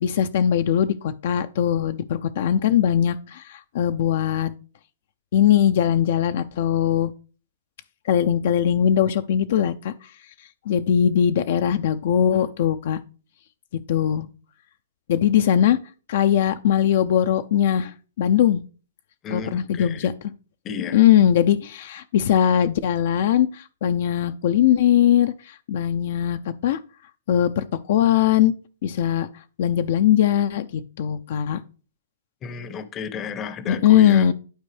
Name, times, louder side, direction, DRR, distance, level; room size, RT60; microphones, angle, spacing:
voice 1, 0.0-4.5 5.3-7.1 8.0-10.1 10.7-13.0 13.9-14.3 15.1-15.8 16.1-18.6 19.3-20.1 20.9-26.8 27.3-28.5 28.8-31.6 33.7-34.3, left 10 dB, 55° left, 10 dB, 0.4 m, -20 dB
voice 2, 19.2-20.1 20.6-21.0 32.4-34.3, left 6 dB, 20° left, 13 dB, 0.7 m, -33 dB
11.0 x 4.4 x 3.3 m, 0.37 s
hypercardioid pair, 150°, 0 cm